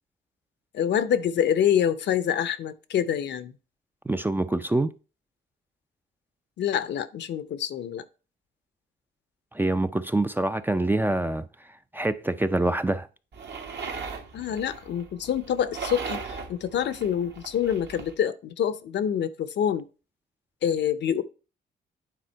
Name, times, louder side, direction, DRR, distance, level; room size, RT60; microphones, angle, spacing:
voice 1, 0.7-3.5 6.6-8.0 14.3-19.9 20.6-21.2, left 9 dB, 65° left, 0.7 m, -26 dB
voice 2, 4.1-4.9 9.5-11.5 11.9-13.1, right 2 dB, 10° right, 0.4 m, -25 dB
sound 1, 13.3-18.1, right 5 dB, 60° right, 1.4 m, -38 dB
9.2 x 3.6 x 4.5 m
cardioid pair, 90°, 20 cm